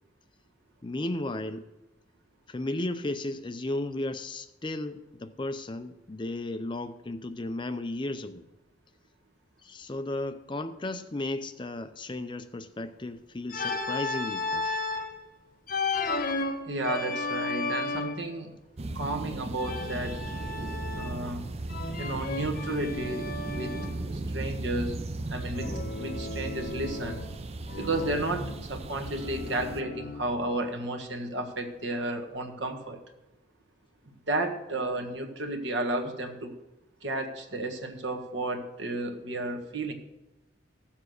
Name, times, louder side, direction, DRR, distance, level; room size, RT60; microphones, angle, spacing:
voice 1, 0.8-1.7 2.5-8.4 9.6-14.8, left 2 dB, 25° left, 10 dB, 0.5 m, -34 dB
Organ, 13.5-15.1 15.7-18.3 19.6-21.3 21.7-24.0 25.6-27.4 27.7-30.4, left 3 dB, 45° left, 1.0 m, -34 dB
voice 2, 16.7-18.5 18.9-20.2 20.9-21.4 22.0-23.8 24.1-25.0 25.3-27.2 27.7-33.0 34.3-36.5 37.0-39.9, right 2 dB, 65° right, 4 dB, 1.6 m, -32 dB
sound 1, 18.8-29.8, right 2 dB, 30° right, 0.5 m, -36 dB
15.0 x 7.4 x 6.4 m, 0.97 s
head